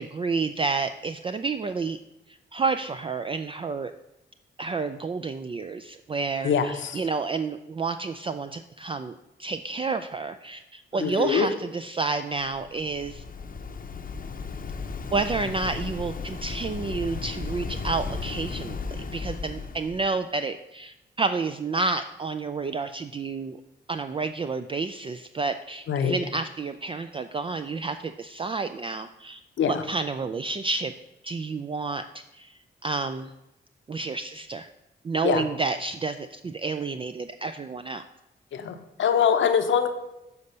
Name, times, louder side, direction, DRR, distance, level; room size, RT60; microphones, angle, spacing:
voice 1, 0.0-2.0 2.3-3.9 4.6-13.2 15.1-23.6 23.9-29.4 29.7-30.9 31.2-33.3 33.9-34.7 35.0-38.0, right 4 dB, 25° right, 9 dB, 0.3 m, -30 dB
voice 2, 6.4-7.0 11.0-11.5 25.9-26.2 29.6-29.8 35.2-35.5 38.5-39.9, left 7 dB, 80° left, 7 dB, 0.8 m, -23 dB
Waves surf, 12.4-20.1, left 4 dB, 45° left, 0.7 m, -35 dB
7.0 x 4.1 x 6.6 m, 0.92 s
cardioid pair, 75°, 20 cm